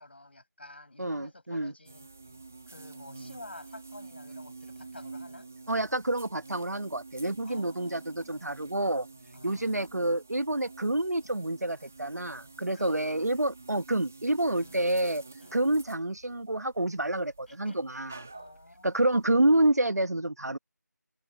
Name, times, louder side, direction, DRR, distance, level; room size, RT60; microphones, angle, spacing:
voice 1, 0.0-2.1 2.7-5.5 7.4-8.5 9.3-10.2 12.7-13.0 14.5-15.0 15.4-15.6 17.5-17.9 18.3-19.1, left 2 dB, 35° left, 5.5 m, -50 dB
voice 2, 1.0-1.7 5.7-9.1 9.4-15.2 15.5-18.1 18.8-20.6, right 1 dB, 60° right, 1.2 m, -28 dB
sound 1, 1.9-19.3, right 3 dB, 5° right, 1.2 m, -49 dB
figure-of-eight pair, 180°, 10 cm